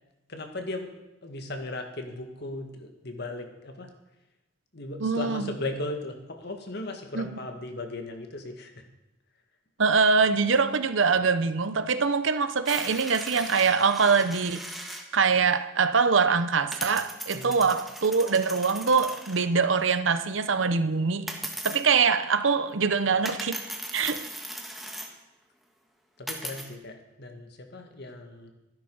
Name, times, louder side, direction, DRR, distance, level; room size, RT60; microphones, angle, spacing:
voice 1, 0.3-0.9 1.2-3.9 4.7-8.9 17.3-17.6 26.2-28.5, left 2 dB, 55° left, 1.8 m, -37 dB
voice 2, 5.0-5.4 7.1-7.3 9.8-14.6 15.1-21.3 21.6-23.6 23.9-24.3, right 5 dB, 75° right, 0.8 m, -23 dB
sound 1, 12.7-15.1 16.1-16.2 16.7-19.5 21.3-21.8 23.3-25.1 26.3-26.7, right 1 dB, ahead, 1.4 m, -38 dB
13.5 x 11.5 x 5.5 m
head